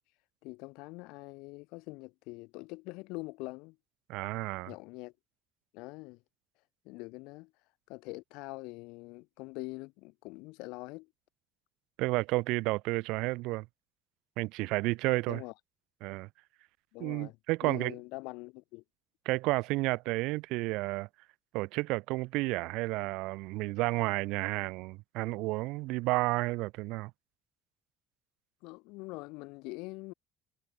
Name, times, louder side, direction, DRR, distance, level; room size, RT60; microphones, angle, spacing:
voice 1, 0.4-3.8 4.7-5.1 5.7-6.2 6.8-7.5 7.9-11.1 15.3-15.5 16.9-17.4 17.6-18.8 28.6-30.1, left 25 dB, 80° left, 2.7 m, -44 dB
voice 2, 4.1-4.7 12.0-13.7 14.4-15.4 16.0-16.3 17.0-17.9 19.3-21.1 21.5-27.1, right 22 dB, 70° right, 0.7 m, -31 dB
cardioid pair, 175°, 0 cm